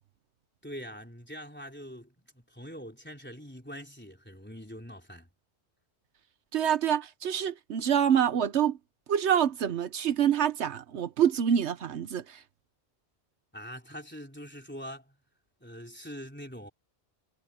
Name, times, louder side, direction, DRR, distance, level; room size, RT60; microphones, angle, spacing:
voice 1, 0.6-5.3 13.5-15.2 15.6-16.7, equal, 10° left, 3.6 m, -43 dB
voice 2, 6.5-8.8 9.1-12.4, right 9 dB, 80° right, 1.1 m, -26 dB
omnidirectional pair, 1.1 m